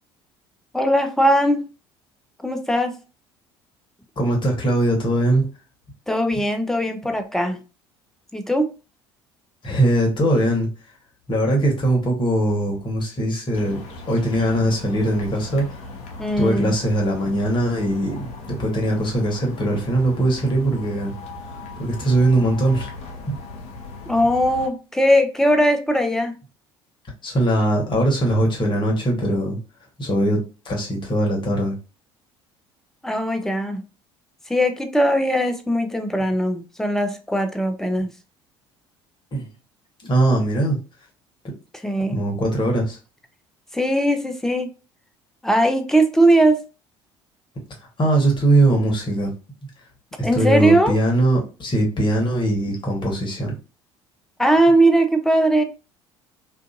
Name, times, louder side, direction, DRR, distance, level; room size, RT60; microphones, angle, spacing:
voice 1, 0.7-1.7 2.4-2.9 6.1-7.6 8.3-8.7 16.2-16.7 24.1-26.3 33.0-33.8 34.5-38.1 41.8-42.2 43.7-44.7 45.4-46.6 50.2-51.0 54.4-55.6, right 1 dB, 5° left, 0.5 m, -19 dB
voice 2, 4.2-5.5 9.6-10.7 11.3-13.8 14.1-15.6 16.4-21.1 21.8-22.9 27.2-29.6 30.0-31.8 39.3-39.5 40.0-40.8 42.1-43.0 48.0-49.3 50.2-53.5, right 1 dB, 35° left, 1.2 m, -21 dB
sound 1, 13.5-24.7, left 3 dB, 50° left, 0.7 m, -38 dB
2.5 x 2.5 x 2.5 m
figure-of-eight pair, 60°, 14 cm